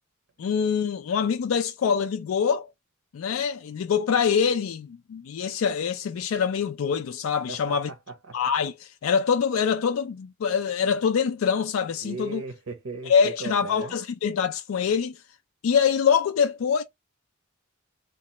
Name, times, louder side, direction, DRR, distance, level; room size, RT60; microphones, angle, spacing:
voice 1, 0.4-2.7 3.1-7.9 8.3-12.4 13.1-15.2 15.6-16.8, left 6 dB, 80° left, 0.4 m, -24 dB
voice 2, 7.5-8.4 12.0-13.9, right 3 dB, 70° right, 0.7 m, -37 dB
2.9 x 2.4 x 4.1 m
head